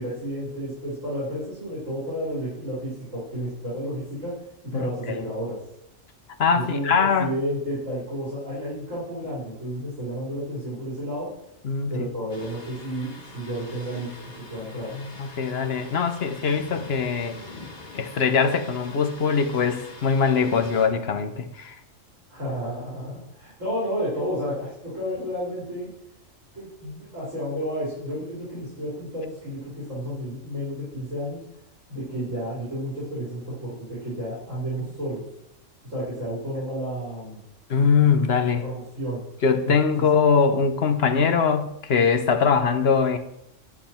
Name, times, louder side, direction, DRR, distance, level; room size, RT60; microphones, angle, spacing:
voice 1, 0.0-4.4 4.7-5.6 6.5-11.3 11.9-14.1 14.5-14.9 22.3-25.9 26.5-31.4 31.9-35.2 35.8-37.4 38.6-39.2 39.6-39.7, equal, 75° right, -8 dB, 4.0 m, -31 dB
voice 2, 6.4-7.3 11.6-11.9 14.9-17.4 17.9-21.7 37.7-38.6 39.4-43.2, left 5 dB, 55° left, 8 dB, 1.0 m, -22 dB
Thunder, 12.3-20.9, left 2 dB, 35° left, 1.8 m, -44 dB
11.0 x 7.5 x 4.4 m, 0.79 s
omnidirectional pair, 1.3 m